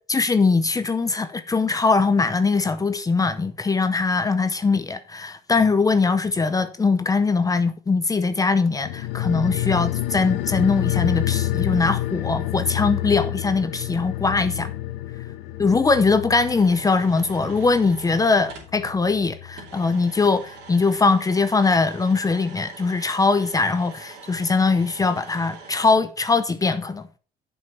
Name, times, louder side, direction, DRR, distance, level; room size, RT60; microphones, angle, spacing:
voice 1, 0.1-14.7 15.6-27.1, left 4 dB, 20° left, 0.7 m, -21 dB
sound 1, 8.8-19.7 20.0-20.1, left 15 dB, 90° left, 0.6 m, -28 dB
sound 2, 16.4-18.7 19.6-25.9, right 4 dB, 85° right, 2.9 m, -43 dB
7.6 x 5.5 x 5.7 m
cardioid pair, 110°, 17 cm